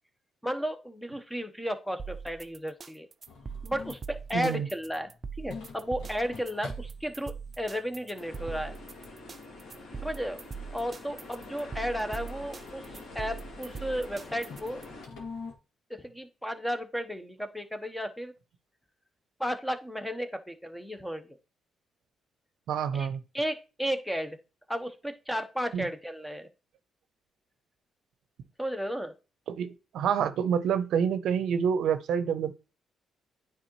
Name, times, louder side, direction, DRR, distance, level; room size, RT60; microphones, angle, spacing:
voice 1, 0.4-3.1 3.6-5.1 5.4-8.7 10.0-10.4 10.7-14.8 16.0-18.3 19.4-21.4 22.9-23.1 23.3-24.4 24.7-26.5 28.6-29.1, equal, 5° left, 0.9 m, -34 dB
sound 1, 2.0-14.9, right 5 dB, 35° right, 0.4 m, -41 dB
sound 2, 3.3-15.5, left 4 dB, 85° left, 2.0 m, -49 dB
voice 2, 4.3-4.7 22.7-23.2 25.7-25.9 29.5-32.5, right 7 dB, 75° right, 0.7 m, -27 dB
sound 3, 8.1-15.1, left 2 dB, 70° left, 2.2 m, -46 dB
9.2 x 3.7 x 3.0 m
cardioid pair, 90°, 0 cm